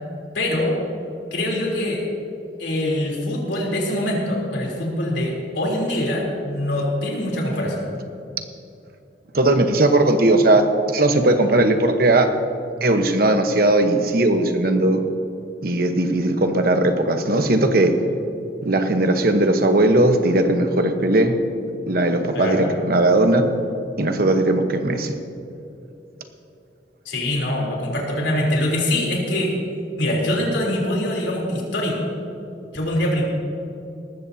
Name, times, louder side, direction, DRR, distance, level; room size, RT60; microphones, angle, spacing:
voice 1, 0.3-0.8 1.3-2.1 2.6-7.8 22.3-22.7 27.1-29.5 30.0-32.1 32.7-33.2, left 1 dB, 85° left, -2 dB, 3.5 m, -23 dB
voice 2, 9.3-12.3 12.8-15.0 15.6-17.9 18.6-21.4 21.9-23.5 24.0-25.2, right 2 dB, 55° right, 6 dB, 1.1 m, -18 dB
19.0 x 14.5 x 2.8 m, 2.7 s
head